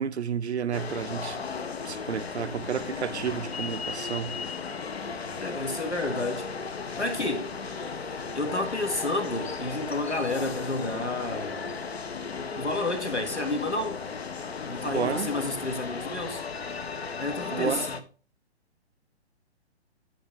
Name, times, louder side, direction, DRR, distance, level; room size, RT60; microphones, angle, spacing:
voice 1, 0.0-1.4 1.8-4.4 14.8-15.3 17.5-17.9, right 7 dB, 75° right, 0.6 m, -31 dB
sound 1, 0.7-18.0, left 5 dB, 65° left, 1.0 m, -35 dB
voice 2, 5.4-6.5 7.0-7.5 8.3-11.8 12.5-14.0 14.6-16.4 17.2-18.0, left 2 dB, 85° left, 2.0 m, -30 dB
11.5 x 5.3 x 3.4 m
figure-of-eight pair, 125°, 33 cm